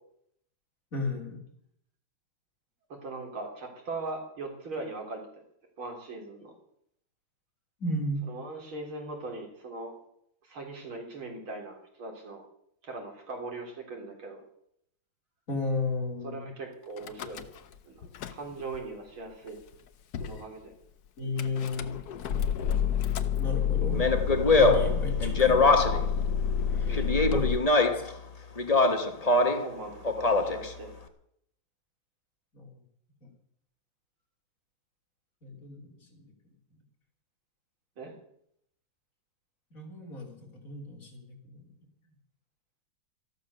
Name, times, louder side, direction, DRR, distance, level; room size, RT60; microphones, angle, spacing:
voice 1, 0.9-1.4 7.8-8.2 15.5-16.5 21.2-22.0 23.4-24.1 24.5-26.0 26.7-27.5 27.9-28.0 32.5-32.7 33.2-33.3 35.4-36.3 36.7-36.8 39.7-41.7, left 2 dB, 40° left, 1 dB, 3.6 m, -34 dB
voice 2, 2.9-5.2 5.8-6.6 8.3-10.0 10.4-12.4 12.8-14.4 16.2-17.5 17.8-19.6 20.2-20.7 26.8-27.2 29.3-30.9 38.0-38.1, right 3 dB, 85° right, 1 dB, 4.3 m, -40 dB
Car / Engine starting / Idling, 17.0-17.8 18.0-18.8 19.5-19.6 19.7-19.8 20.1-20.4 21.4-27.6, left 7 dB, 60° left, 1.2 m, -29 dB
Speech, 23.9-26.1 26.9-28.1 28.6-29.7 30.0-30.7, left 3 dB, 25° left, 1.0 m, -23 dB
14.0 x 12.0 x 6.7 m, 0.70 s
omnidirectional pair, 2.2 m